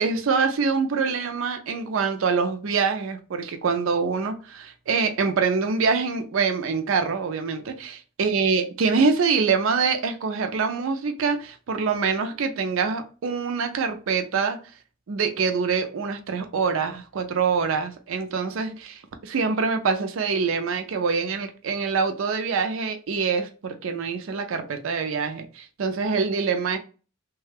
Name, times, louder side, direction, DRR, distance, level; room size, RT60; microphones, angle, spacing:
voice 1, 0.0-14.6 15.1-26.8, right 5 dB, 65° right, 0.4 m, -25 dB
3.1 x 2.2 x 3.3 m
head